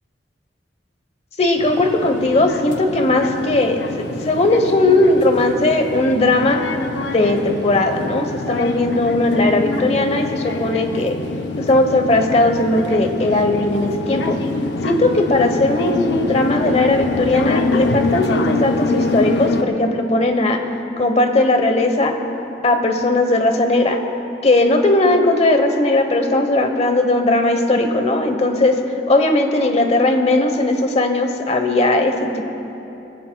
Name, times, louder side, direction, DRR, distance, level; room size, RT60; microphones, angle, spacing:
voice 1, 1.4-6.6 7.0-11.2 11.6-14.4 14.8-20.6 21.0-22.1 22.6-24.0 24.4-28.8 29.1-32.4, left 2 dB, 35° left, 5 dB, 1.0 m, -18 dB
sound 1, 1.6-19.6, left 3 dB, 70° left, 0.6 m, -25 dB
21.0 x 15.5 x 2.3 m, 3.0 s
head